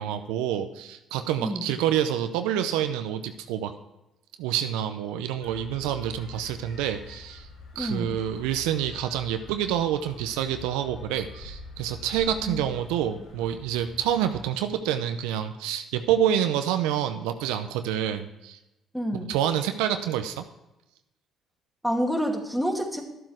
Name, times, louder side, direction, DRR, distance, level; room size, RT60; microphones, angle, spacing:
voice 1, 0.0-3.7 4.4-7.5 7.8-18.6 19.1-20.4, right 10 dB, 85° right, 8 dB, 0.6 m, -27 dB
sound 1, 5.4-14.4, left 3 dB, 85° left, 3.0 m, -45 dB
voice 2, 7.8-8.1 12.4-12.6 18.9-19.3 21.8-23.0, equal, ahead, 1 dB, 2.3 m, -28 dB
12.0 x 7.7 x 4.7 m, 0.94 s
supercardioid pair, 60°, 0 cm